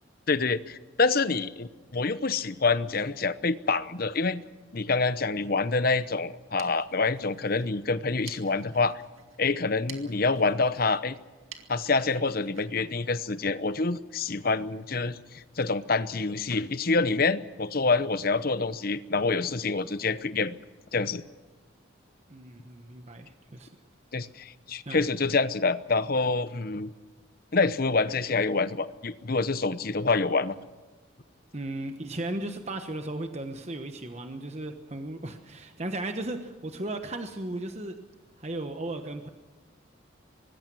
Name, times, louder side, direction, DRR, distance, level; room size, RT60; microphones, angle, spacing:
voice 1, 0.3-4.4 4.7-9.0 9.4-11.1 11.7-20.6 20.9-21.2 24.1-26.9 27.5-30.5, left 3 dB, 45° left, 14 dB, 0.9 m, -27 dB
sound 1, 6.3-13.8, right 9 dB, 80° right, 2.1 m, -51 dB
voice 2, 22.3-23.7 24.9-25.1 31.5-37.9 38.4-39.3, right 2 dB, 30° right, 6 dB, 1.1 m, -36 dB
25.0 x 20.0 x 6.2 m, 1.3 s
head